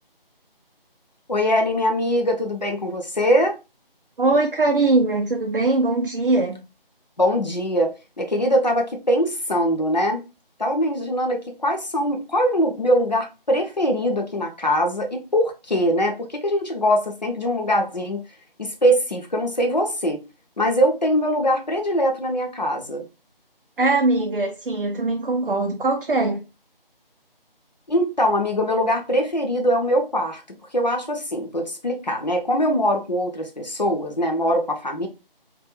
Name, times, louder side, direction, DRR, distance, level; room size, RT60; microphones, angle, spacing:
voice 1, 1.3-3.6 7.2-10.2 10.6-18.2 18.6-20.2 20.6-23.0 27.9-30.4 30.7-35.1, equal, 50° left, 0.5 m, -22 dB
voice 2, 4.2-6.6 23.8-26.4, right 2 dB, 65° right, 0.5 m, -21 dB
2.3 x 2.3 x 2.9 m
figure-of-eight pair, 165°, 29 cm